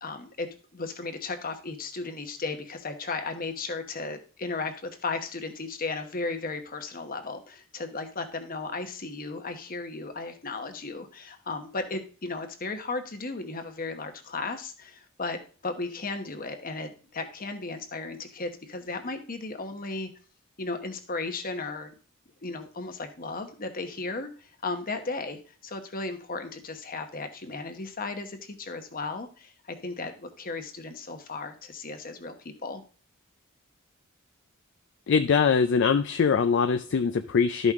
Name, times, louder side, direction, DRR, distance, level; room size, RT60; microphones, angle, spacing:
voice 1, 0.0-20.1 20.6-21.9 22.4-32.8, left 3 dB, 40° left, 7 dB, 1.0 m, -35 dB
voice 2, 35.1-37.7, left 5 dB, 55° left, 8 dB, 0.4 m, -22 dB
12.5 x 5.3 x 3.6 m, 0.38 s
head